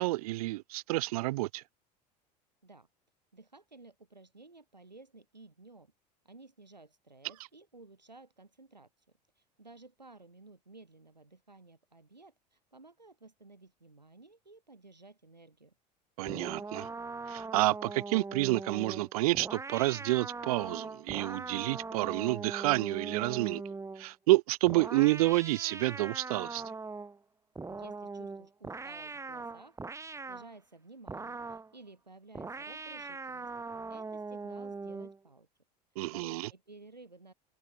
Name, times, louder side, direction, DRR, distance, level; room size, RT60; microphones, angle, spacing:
voice 1, 0.0-1.6 16.2-16.9 17.3-23.6 24.0-26.6 36.0-36.5, right 19 dB, 60° right, 1.1 m, -29 dB
voice 2, 3.3-5.9 6.2-9.0 9.4-15.7 27.7-29.8 30.3-33.5 33.9-35.5 36.1-37.3, right 3 dB, 90° right, 3.0 m, -55 dB
sound 1, 16.3-24.1 24.7-27.2 27.6-30.5 31.1-31.7 32.3-35.2, right 4 dB, 15° right, 1.6 m, -41 dB
open air
figure-of-eight pair, 75°, 21 cm